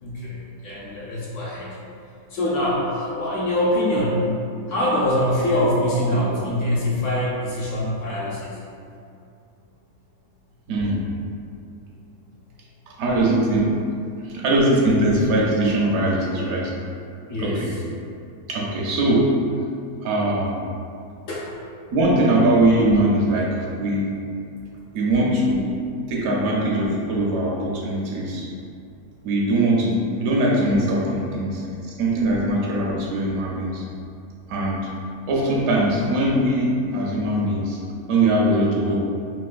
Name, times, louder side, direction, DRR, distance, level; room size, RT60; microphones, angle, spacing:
voice 1, 0.0-1.8 2.3-4.3 4.7-8.5 14.3-14.4 17.3-17.6 21.3-21.5, left 1 dB, 65° left, -6 dB, 0.9 m, -24 dB
voice 2, 10.7-11.0 13.0-13.8 14.2-16.7 17.4-17.7 18.5-19.3 20.0-20.6 21.9-24.1 24.9-25.7 26.1-28.5 29.2-31.6 32.0-33.8 34.5-34.8 35.3-37.8 38.1-39.0, right 1 dB, 75° right, -4 dB, 1.0 m, -21 dB
3.8 x 2.3 x 2.4 m, 2.5 s
omnidirectional pair, 1.6 m